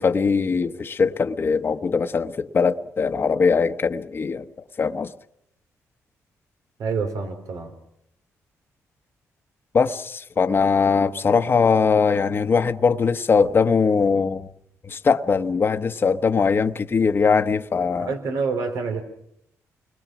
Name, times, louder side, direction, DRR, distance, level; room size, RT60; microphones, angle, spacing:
voice 1, 0.0-4.5 4.8-5.1 9.7-14.5 14.8-18.1, left 5 dB, 40° left, 1.1 m, -21 dB
voice 2, 6.8-7.7 18.0-19.0, right 4 dB, 80° right, 3.8 m, -27 dB
29.0 x 22.0 x 6.1 m
cardioid pair, 90°, 6 cm